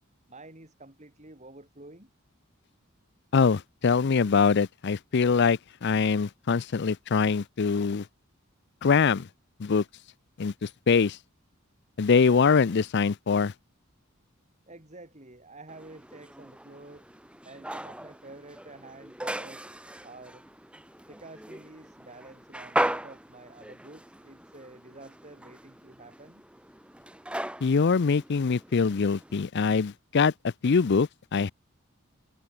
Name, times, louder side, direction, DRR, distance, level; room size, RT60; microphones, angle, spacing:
voice 1, 0.3-2.1 14.7-17.0 17.4-19.7 20.0-20.4 21.1-26.4, right 2 dB, 35° right, 4.6 m, -49 dB
voice 2, 3.3-8.0 8.8-9.3 9.6-9.8 10.4-11.2 12.0-13.5 27.6-30.3 30.6-31.5, left 5 dB, 55° left, 0.5 m, -23 dB
sound 1, 15.7-29.4, right 1 dB, 5° right, 3.0 m, -38 dB
head